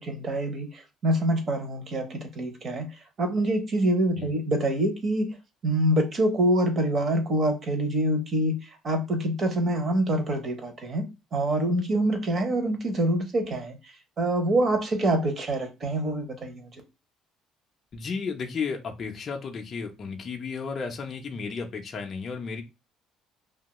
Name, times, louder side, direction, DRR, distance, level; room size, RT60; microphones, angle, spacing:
voice 1, 0.0-2.9 3.2-5.4 5.6-13.8 14.2-16.7, right 1 dB, 30° right, 0.6 m, -26 dB
voice 2, 17.9-22.6, left 5 dB, 30° left, 0.4 m, -33 dB
2.8 x 2.2 x 2.9 m
cardioid pair, 160°, 0 cm